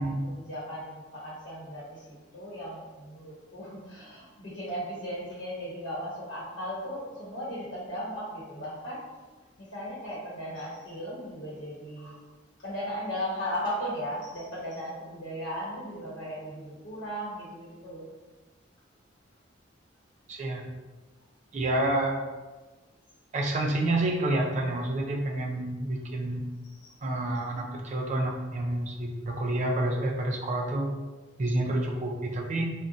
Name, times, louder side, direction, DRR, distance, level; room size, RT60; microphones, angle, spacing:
voice 1, 0.0-9.1 9.6-12.2 12.6-18.1 26.6-27.0, equal, 80° left, -7 dB, 0.9 m, -37 dB
voice 2, 20.3-20.7 21.5-22.2 23.3-26.4 27.0-30.9 31.4-32.7, right 1 dB, 40° right, 1 dB, 0.4 m, -28 dB
2.5 x 2.1 x 3.8 m, 1.2 s
head